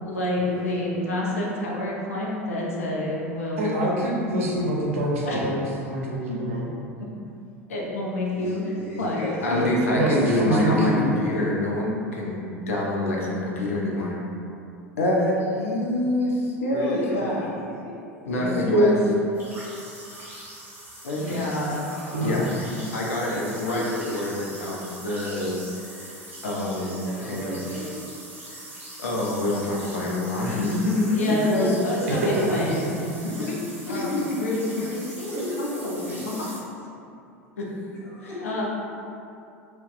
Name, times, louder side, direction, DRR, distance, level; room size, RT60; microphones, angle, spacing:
voice 1, 0.0-3.8 5.3-5.4 6.3-6.4 7.7-8.7 9.0-14.2 15.0-17.7 18.2-19.2 21.0-21.8 22.2-26.2 26.4-27.0 27.2-27.5 28.5-28.6 29.0-36.4 37.6-37.7 38.4-38.7, left 1 dB, 75° left, -3 dB, 0.5 m, -26 dB
voice 2, 0.9-1.3 8.3-10.1 16.7-18.1 21.6-22.3 23.3-24.5 26.8-28.0 35.3-36.4 38.0-38.7, equal, 30° left, -9 dB, 1.3 m, -36 dB
voice 3, 3.6-6.7 9.9-11.1 22.1-22.4 32.1-32.8, right 1 dB, 70° right, -3 dB, 0.6 m, -25 dB
sound 1, 19.3-36.6, right 1 dB, 25° right, 1.2 m, -42 dB
2.7 x 2.2 x 3.8 m, 2.6 s
figure-of-eight pair, 80°, 8 cm